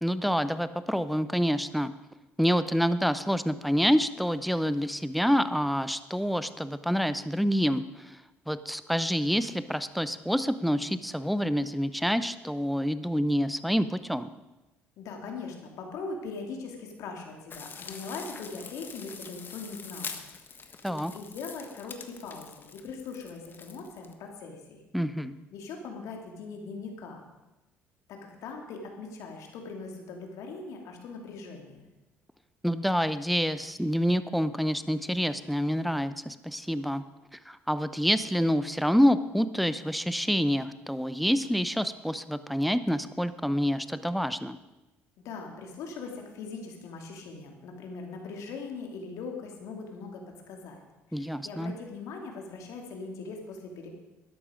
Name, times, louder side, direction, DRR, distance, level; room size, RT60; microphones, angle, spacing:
voice 1, 0.0-1.9 2.4-8.2 8.5-14.3 20.8-21.1 24.9-25.4 32.6-37.0 37.5-44.6 51.1-51.7, equal, ahead, 13 dB, 0.8 m, -27 dB
voice 2, 15.0-20.1 20.6-24.8 25.5-27.2 28.1-31.9 45.2-50.8 51.1-53.9, left 4 dB, 75° left, 2 dB, 2.7 m, -41 dB
sound 1, 17.5-24.1, left 5 dB, 40° left, 1.4 m, -44 dB
13.0 x 11.0 x 5.1 m, 1.0 s
supercardioid pair, 80°, 6 cm